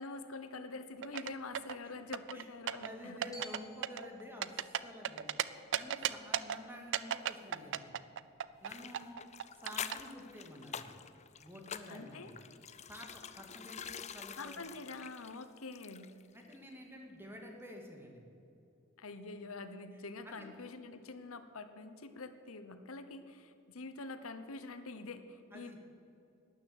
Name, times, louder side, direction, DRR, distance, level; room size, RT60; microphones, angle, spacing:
voice 1, 0.0-3.2 11.9-12.3 14.4-16.1 19.0-25.8, left 3 dB, 85° left, 10 dB, 1.0 m, -46 dB
sound 1, 1.0-1.8 2.1-2.9 3.2-3.6 3.8-5.4 5.7-6.6 6.9-8.7 8.9-10.0, right 10 dB, 60° right, 0.5 m, -35 dB
voice 2, 2.3-4.5 4.8-7.9 8.6-9.2 9.6-10.9 11.4-12.3 12.9-14.6 16.3-18.2 19.9-20.5 25.5-25.8, equal, 10° right, 1 dB, 2.1 m, -50 dB
Glockenspiel, 3.3-7.4, left 2 dB, 15° left, 3.0 m, -58 dB
sound 2, 8.7-16.3 16.5-16.6, left 7 dB, 35° left, 0.5 m, -47 dB
12.5 x 10.5 x 8.0 m, 2.8 s
head